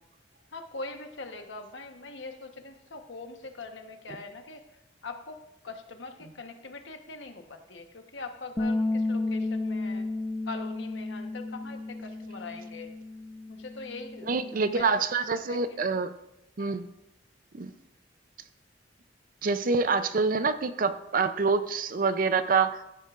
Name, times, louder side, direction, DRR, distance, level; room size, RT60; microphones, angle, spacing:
voice 1, 0.5-4.6 5.0-5.4 5.6-10.1 10.5-12.9 13.5-15.0 15.3-15.6 16.6-16.8, left 3 dB, 75° left, 5 dB, 1.1 m, -42 dB
Bass guitar, 8.6-14.8, left 2 dB, 15° left, 0.4 m, -33 dB
voice 2, 14.2-16.1 16.6-16.9 17.5-17.7 19.4-22.8, right 4 dB, 45° right, 11 dB, 0.5 m, -26 dB
15.0 x 9.2 x 2.5 m, 0.90 s
head